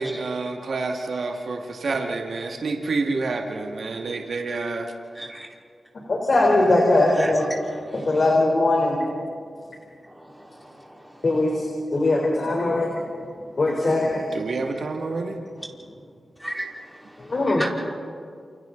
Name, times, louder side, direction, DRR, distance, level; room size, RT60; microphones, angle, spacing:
voice 1, 0.0-4.9 14.3-15.4, right 3 dB, 75° right, 1 dB, 2.1 m, -28 dB
voice 2, 5.2-5.5 7.1-8.0 16.4-16.7 17.5-17.7, right 1 dB, ahead, -3 dB, 4.4 m, -33 dB
voice 3, 6.1-7.5 7.9-9.0 11.2-11.6 11.9-12.9 13.6-14.2 17.3-17.7, left 2 dB, 55° left, -1 dB, 3.9 m, -20 dB
29.0 x 28.0 x 4.0 m, 2.2 s
cardioid pair, 65°, 0 cm